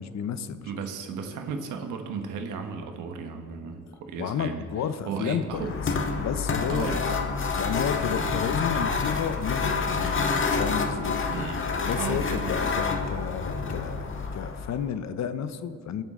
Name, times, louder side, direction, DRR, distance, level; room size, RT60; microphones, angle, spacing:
voice 1, 0.0-0.7 4.2-5.9 6.2-7.1 7.6-10.1 10.5-11.2 11.8-14.1 14.3-16.0, left 8 dB, 60° left, 11 dB, 0.9 m, -31 dB
voice 2, 0.6-4.6 5.1-5.7 6.7-7.0 11.3-11.7 11.9-12.7, right 5 dB, 85° right, 6 dB, 1.4 m, -34 dB
sound 1, 5.5-14.9, left 4 dB, 40° left, 1.6 m, -28 dB
23.5 x 8.8 x 3.8 m, 2.4 s
cardioid pair, 90°, 30 cm